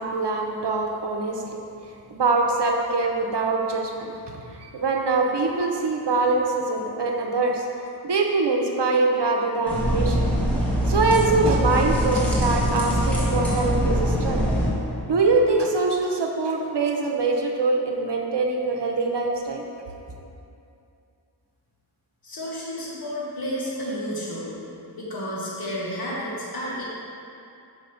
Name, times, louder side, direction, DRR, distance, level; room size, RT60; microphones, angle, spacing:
voice 1, 0.0-1.4 2.1-7.7 8.0-10.2 10.9-14.4 15.1-19.6, right 3 dB, 80° right, 1 dB, 0.8 m, -23 dB
sound 1, 9.7-14.7, equal, 5° left, 1.7 m, -23 dB
voice 2, 22.2-24.6 25.0-26.8, equal, 60° left, -6 dB, 1.4 m, -31 dB
6.4 x 5.2 x 5.5 m, 2.6 s
wide cardioid pair, 65°, 41 cm